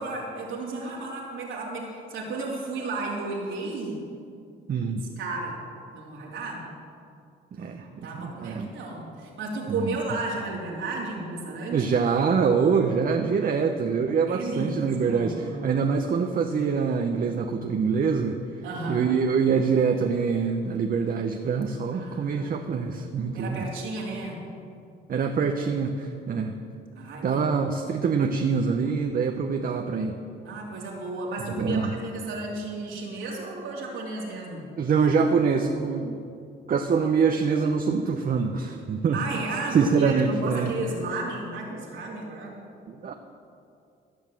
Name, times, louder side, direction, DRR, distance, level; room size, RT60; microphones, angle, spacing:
voice 1, 0.0-4.0 5.2-5.6 5.9-6.7 7.5-11.9 14.3-15.7 18.6-19.1 21.9-23.0 23.3-24.4 26.9-27.5 30.4-34.7 39.1-42.6, right 2 dB, 80° right, -3 dB, 2.8 m, -33 dB
voice 2, 4.7-5.0 7.5-8.7 9.7-10.0 11.7-18.4 18.9-23.6 25.1-26.5 27.2-30.2 31.6-31.9 34.8-36.2 36.7-39.2 39.7-40.7 42.9-43.1, right 5 dB, 45° right, 4 dB, 0.8 m, -25 dB
14.0 x 6.5 x 7.5 m, 2.5 s
cardioid pair, 90°, 20 cm